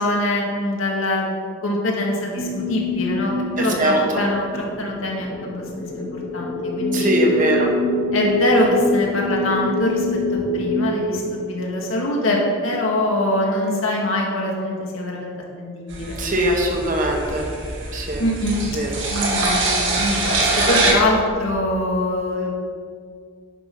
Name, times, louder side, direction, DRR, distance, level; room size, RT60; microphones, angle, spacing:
voice 1, 0.0-1.4 1.6-7.1 8.1-10.1 10.3-15.3 15.6-16.2 18.2-18.6 19.1-22.6, left 1 dB, 75° left, -2 dB, 2.1 m, -23 dB
sound 1, 2.4-12.1, left 1 dB, 25° left, 0.8 m, -25 dB
voice 2, 3.6-4.2 6.9-7.7 16.2-17.5 17.9-18.2 18.7-19.0, right 1 dB, 40° right, 1 dB, 1.4 m, -21 dB
sound 2, 15.9-20.9, right 2 dB, 60° right, 2.0 m, -23 dB
9.8 x 6.5 x 5.5 m, 2.2 s
head